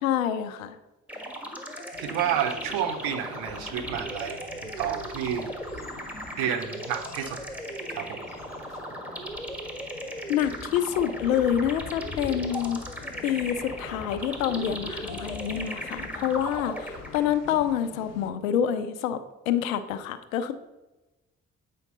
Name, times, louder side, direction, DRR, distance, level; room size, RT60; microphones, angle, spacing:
voice 1, 0.0-0.8 10.3-12.8 13.2-19.2 19.5-20.5, left 9 dB, 75° left, 11 dB, 0.5 m, -27 dB
sound 1, 1.1-17.5, equal, 5° right, 1.4 m, -37 dB
sound 2, 1.9-18.3, left 7 dB, 40° left, 0.7 m, -46 dB
voice 2, 2.0-5.5 6.4-7.4 7.9-8.2, right 9 dB, 65° right, 7 dB, 0.8 m, -30 dB
8.3 x 5.1 x 4.0 m, 1.0 s
figure-of-eight pair, 40°, 40 cm